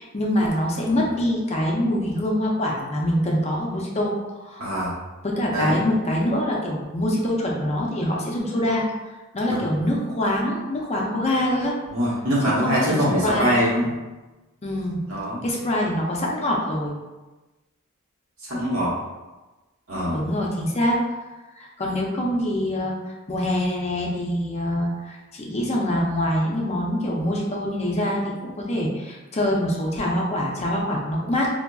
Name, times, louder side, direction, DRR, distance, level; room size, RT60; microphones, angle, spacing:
voice 1, 0.0-4.7 5.2-8.8 9.3-11.7 12.4-13.5 14.6-15.0 15.4-16.9 20.1-21.0 21.6-22.9 23.3-31.5, left 1 dB, 30° left, -2 dB, 0.5 m, -24 dB
voice 2, 4.6-4.9 5.5-5.8 9.5-9.6 11.9-13.9 15.1-15.4 18.5-18.9 19.9-20.2, equal, 70° right, -6 dB, 1.1 m, -23 dB
3.8 x 2.3 x 2.3 m, 1.1 s
head